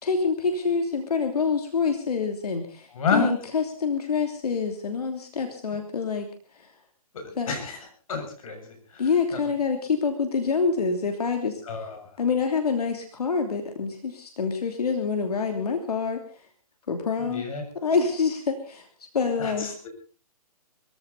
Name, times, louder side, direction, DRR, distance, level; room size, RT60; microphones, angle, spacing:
voice 1, 0.0-6.3 6.6-6.7 7.4-7.5 9.0-11.9 12.2-16.2 16.9-17.5 17.7-18.9 19.1-19.7, left 5 dB, 80° left, 5 dB, 3.1 m, -26 dB
voice 2, 2.9-3.3 7.5-7.8 8.1-8.6 8.9-9.4 11.7-12.0 17.2-17.6 19.4-19.9, left 5 dB, 65° left, 5 dB, 7.2 m, -29 dB
22.0 x 15.5 x 4.1 m, 0.38 s
hypercardioid pair, 145°, 19 cm